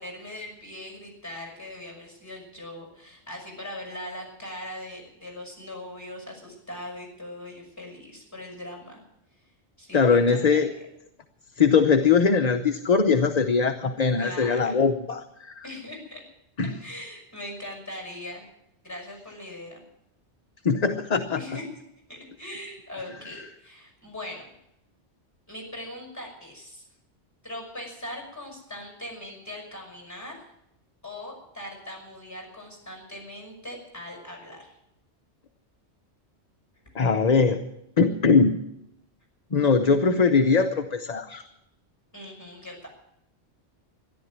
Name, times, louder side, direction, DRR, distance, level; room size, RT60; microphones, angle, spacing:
voice 1, 0.0-9.0 9.8-10.6 14.2-14.8 15.6-16.2 16.8-18.5 18.8-19.8 21.4-21.7 22.1-24.4 25.5-26.8 27.4-30.5 31.0-34.7 42.1-42.9, left 1 dB, 15° left, 1 dB, 6.1 m, -40 dB
voice 2, 9.9-10.7 11.6-15.6 16.6-16.7 20.6-21.4 36.9-37.6 38.0-38.6 39.5-41.4, left 5 dB, 40° left, 6 dB, 0.8 m, -21 dB
13.5 x 11.0 x 9.4 m, 0.82 s
omnidirectional pair, 1.2 m